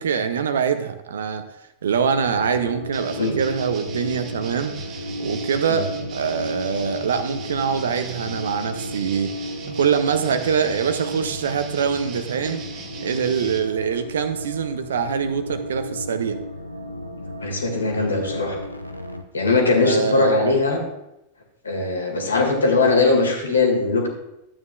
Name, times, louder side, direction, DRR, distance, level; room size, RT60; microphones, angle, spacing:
voice 1, 0.0-1.4 1.8-4.7 5.2-9.3 9.8-12.6 13.0-16.4 19.8-20.6 23.5-23.7, right 7 dB, 65° right, 10 dB, 0.6 m, -24 dB
sound 1, 2.0-19.2, left 1 dB, 90° left, 0.6 m, -34 dB
sound 2, 2.9-13.6, right 5 dB, 35° right, 1.3 m, -39 dB
voice 2, 17.4-18.6 19.3-20.8 21.6-24.1, left 3 dB, 75° left, 2 dB, 1.8 m, -20 dB
12.5 x 8.8 x 2.3 m, 0.89 s
figure-of-eight pair, 90°, 0 cm